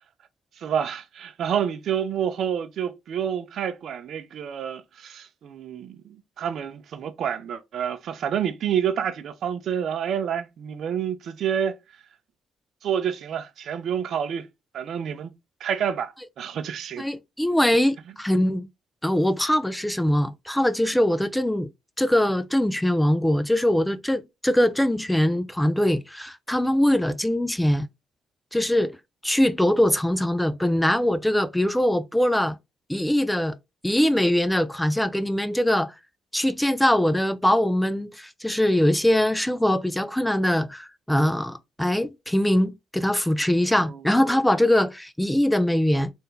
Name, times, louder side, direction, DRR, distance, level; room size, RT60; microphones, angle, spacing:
voice 1, 0.6-11.7 12.8-14.5 14.7-15.3 15.6-17.1 43.8-44.0, right 8 dB, 65° right, 0.5 m, -28 dB
voice 2, 17.0-18.7 19.0-21.7 22.0-27.9 28.5-29.0 29.2-32.6 32.9-33.6 33.8-35.9 36.3-46.1, left 1 dB, 5° left, 0.4 m, -22 dB
3.4 x 2.7 x 3.6 m
cardioid pair, 90°, 0 cm